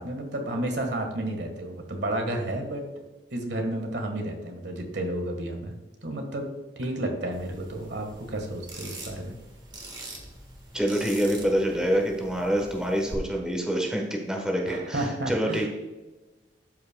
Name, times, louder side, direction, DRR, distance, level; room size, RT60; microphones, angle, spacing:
voice 1, 0.0-2.8 3.3-5.7 6.0-6.5 6.8-9.3 14.7-15.6, right 1 dB, 75° right, 4 dB, 1.4 m, -31 dB
sound 1, 7.3-13.2, right 2 dB, 25° right, 1.5 m, -44 dB
voice 2, 10.7-15.7, equal, 5° right, 1 dB, 1.1 m, -26 dB
12.5 x 5.6 x 2.2 m, 1.1 s
head